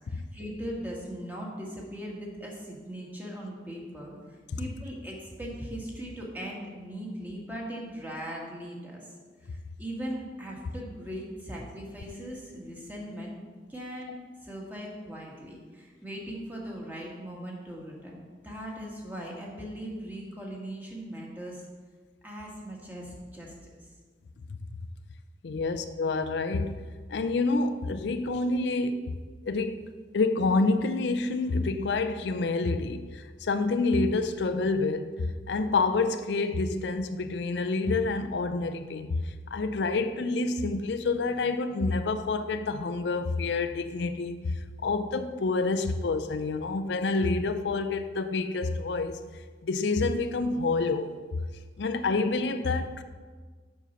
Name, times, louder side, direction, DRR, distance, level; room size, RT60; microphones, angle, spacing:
voice 1, 0.0-9.1 9.4-13.3 13.7-14.1 14.4-18.2 18.4-21.6 22.2-23.7, equal, 10° right, 1.4 m, -39 dB
voice 2, 25.4-26.8 27.1-29.2 29.4-29.9 30.1-49.2 49.6-51.4 51.8-53.0, left 3 dB, 75° left, 0.4 m, -28 dB
7.3 x 5.5 x 5.7 m
head